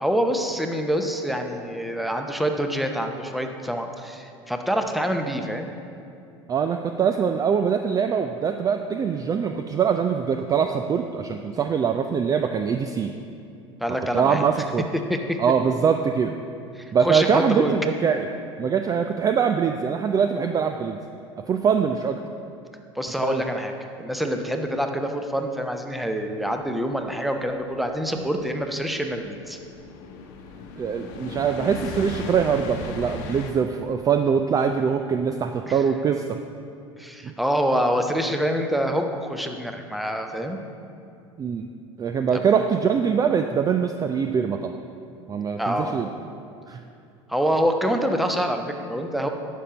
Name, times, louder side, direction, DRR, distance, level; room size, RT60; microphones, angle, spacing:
voice 1, 0.0-5.7 13.8-14.4 15.1-15.4 16.7-17.7 22.9-23.7 24.0-29.6 35.7-35.8 37.0-40.6 42.3-42.4 45.6-45.9 47.3-49.3, equal, ahead, 5 dB, 0.8 m, -26 dB
voice 2, 6.5-13.2 14.1-14.9 15.4-16.4 16.9-18.3 18.6-21.0 21.5-22.2 23.2-23.4 30.8-36.4 37.2-37.3 41.4-41.7 42.0-44.8 45.3-46.1 46.7-46.8, right 6 dB, 25° right, 6 dB, 0.4 m, -23 dB
sound 1, 26.5-33.5, left 3 dB, 55° left, 1.0 m, -37 dB
10.0 x 6.5 x 5.0 m, 2.7 s
figure-of-eight pair, 70°, 15 cm